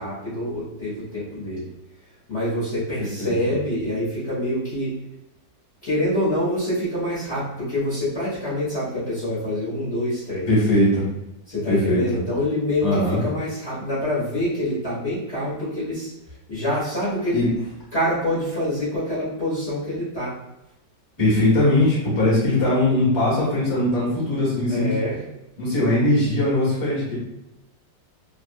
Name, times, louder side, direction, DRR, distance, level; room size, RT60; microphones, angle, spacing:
voice 1, 0.0-1.7 2.3-5.0 5.8-10.5 11.5-16.1 16.5-17.4 17.9-20.3 24.7-25.2, left 1 dB, 45° left, -10 dB, 0.9 m, -26 dB
voice 2, 3.0-3.3 10.5-11.1 11.7-12.0 12.8-13.2 17.3-17.5 21.2-24.9 25.6-27.1, left 1 dB, 15° left, -7 dB, 0.8 m, -20 dB
3.0 x 2.3 x 2.6 m, 0.90 s
omnidirectional pair, 2.0 m